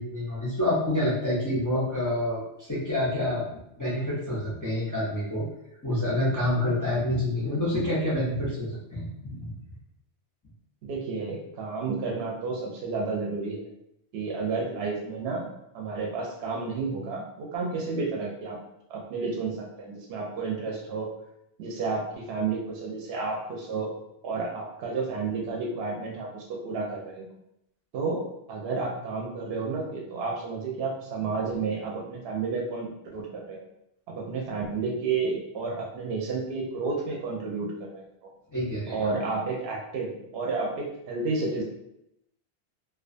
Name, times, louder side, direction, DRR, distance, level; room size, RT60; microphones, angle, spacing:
voice 1, 0.0-5.5 5.8-9.5 38.5-39.1, left 1 dB, 25° left, -8 dB, 0.4 m, -28 dB
voice 2, 10.8-13.6 14.1-15.5 15.7-18.6 18.9-21.1 21.6-23.9 24.2-27.2 27.9-28.2 28.5-32.9 33.1-33.6 34.2-38.3 38.9-41.6, right 4 dB, 70° right, -1 dB, 0.8 m, -31 dB
2.3 x 2.2 x 2.5 m, 0.80 s
omnidirectional pair, 1.1 m